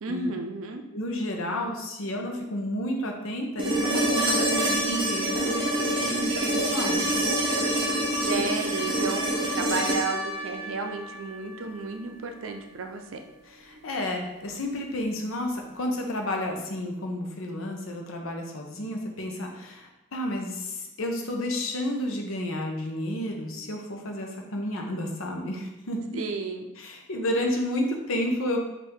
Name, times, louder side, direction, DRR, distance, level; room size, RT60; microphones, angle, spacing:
voice 1, 0.0-0.8 8.1-13.2 26.1-26.7, right 3 dB, 75° right, 5 dB, 0.5 m, -32 dB
voice 2, 0.9-7.0 7.8-8.1 13.5-26.2 26.8-28.6, left 1 dB, 75° left, 2 dB, 0.7 m, -31 dB
sound 1, 3.6-11.6 13.8-13.9, right 1 dB, 25° right, 0.8 m, -26 dB
4.3 x 2.6 x 3.6 m, 0.95 s
head